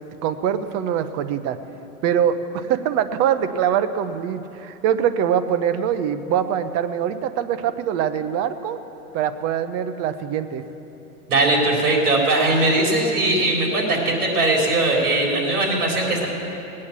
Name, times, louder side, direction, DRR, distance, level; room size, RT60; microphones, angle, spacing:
voice 1, 0.2-1.6 2.0-8.8 9.1-10.6, right 9 dB, 35° right, 11 dB, 0.7 m, -23 dB
voice 2, 11.3-16.3, right 2 dB, 80° right, -1 dB, 4.0 m, -20 dB
19.5 x 8.6 x 7.3 m, 3.0 s
hypercardioid pair, 130°, 45 cm